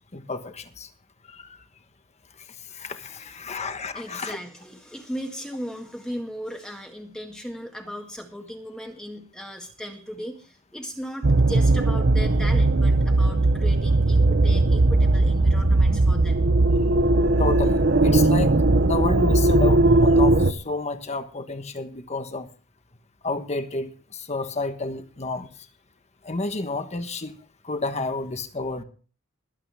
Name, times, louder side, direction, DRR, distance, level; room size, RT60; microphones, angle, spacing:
voice 1, 0.1-0.9 1.3-1.6 2.4-4.4 17.4-18.5 18.8-22.5 23.2-25.5 26.2-27.4 27.6-28.8, left 3 dB, 30° left, 8 dB, 1.3 m, -30 dB
voice 2, 3.9-16.5, equal, 5° left, 2 dB, 1.8 m, -37 dB
sound 1, 11.2-20.5, right 2 dB, 55° right, 0.9 m, -18 dB
21.5 x 8.7 x 3.5 m, 0.38 s
head